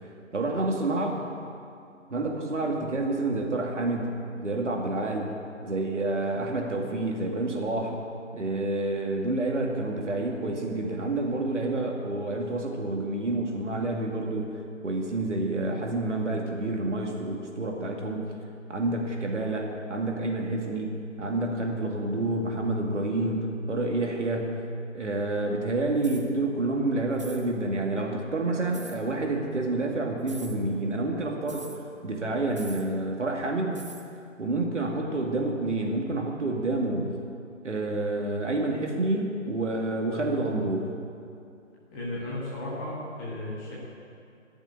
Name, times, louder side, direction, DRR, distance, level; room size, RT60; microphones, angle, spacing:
voice 1, 0.3-1.3 2.1-5.3 5.6-8.0 8.3-18.3 18.7-24.6 24.9-33.9 34.4-37.1 37.6-40.9, right 2 dB, 65° right, 1 dB, 2.4 m, -28 dB
sound 1, 26.0-26.3 27.1-27.4 28.7-29.0 30.2-30.6 31.5-31.8 32.5-32.9 33.7-34.1, right 3 dB, 25° right, 0.7 m, -44 dB
voice 2, 41.9-43.7, left 1 dB, 10° left, -6 dB, 1.6 m, -34 dB
13.0 x 7.2 x 9.8 m, 2.5 s
figure-of-eight pair, 155°, 39 cm